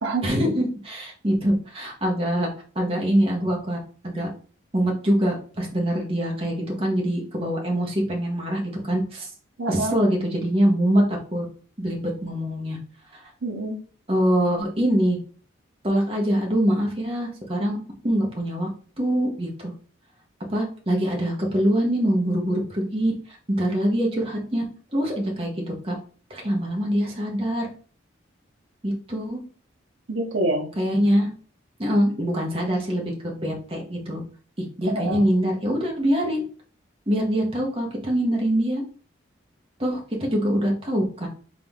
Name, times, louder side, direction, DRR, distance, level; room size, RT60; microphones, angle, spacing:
voice 1, 0.2-2.5 2.7-3.8 4.0-4.3 4.7-9.3 9.7-11.5 11.8-12.8 14.1-15.2 15.8-17.8 18.0-18.7 19.0-19.7 20.5-23.1 23.5-24.6 24.9-25.9 26.3-27.7 28.8-29.4 30.8-31.3 31.8-33.1 33.4-34.2 34.8-36.4 37.1-38.8 39.8-41.3, equal, 30° right, -1 dB, 1.2 m, -24 dB
voice 2, 9.6-10.0 13.4-13.8 30.1-30.7 34.9-35.2, right 2 dB, 75° right, 3 dB, 0.8 m, -26 dB
3.8 x 3.7 x 3.6 m, 0.40 s
head